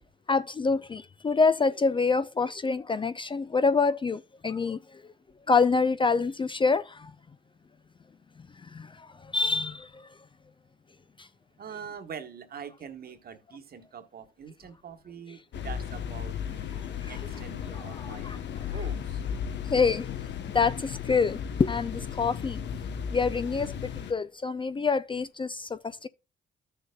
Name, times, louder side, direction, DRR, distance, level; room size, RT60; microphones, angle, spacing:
voice 1, 0.3-5.0 5.5-7.1 8.7-10.1 11.2-11.3 17.0-17.1 18.0-18.4 19.7-22.6 23.1-26.1, left 4 dB, 25° left, 0.4 m, -27 dB
voice 2, 11.6-18.3 18.7-19.2, right 7 dB, 50° right, 1.3 m, -44 dB
sound 1, 15.5-24.1, left 8 dB, 65° left, 0.9 m, -35 dB
13.5 x 6.8 x 2.2 m
cardioid pair, 90°, 20 cm